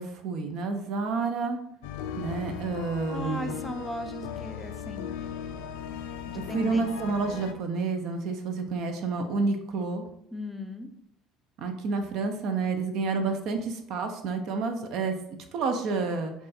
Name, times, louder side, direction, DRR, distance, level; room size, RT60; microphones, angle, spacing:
voice 1, 0.0-1.6 2.2-3.5 6.5-10.0 11.6-15.1 15.5-16.3, right 4 dB, 60° right, 5 dB, 0.5 m, -29 dB
sound 1, 1.8-7.5, left 8 dB, 80° left, 0.3 m, -38 dB
voice 2, 3.1-5.2 6.3-7.2 10.3-10.9, left 1 dB, 5° left, 6 dB, 0.4 m, -38 dB
3.7 x 2.4 x 4.0 m, 0.76 s
hypercardioid pair, 70°, 0 cm